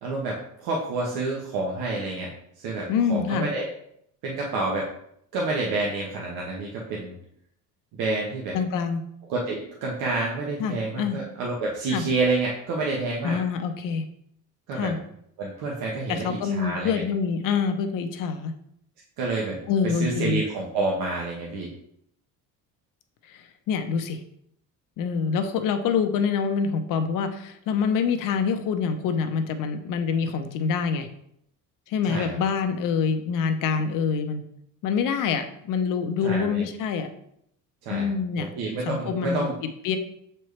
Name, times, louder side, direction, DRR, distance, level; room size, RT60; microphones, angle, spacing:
voice 1, 0.0-2.3 2.6-3.7 4.2-4.9 5.3-7.2 7.9-8.6 9.3-13.4 14.7-14.9 15.4-17.0 19.2-19.6 19.8-21.7 32.1-32.4 36.2-36.6 37.8-39.5, right 3 dB, 85° right, -2 dB, 1.2 m, -28 dB
voice 2, 2.9-3.5 8.5-9.0 10.6-11.2 11.9-12.1 13.2-14.0 14.7-15.0 16.1-18.5 19.7-20.4 23.3-24.2 25.0-31.1 31.9-34.4 34.8-37.1 37.9-38.5 38.9-39.5 39.8-40.0, left 6 dB, 65° left, 8 dB, 0.8 m, -26 dB
6.8 x 4.5 x 3.2 m, 0.72 s
cardioid pair, 160°, 35 cm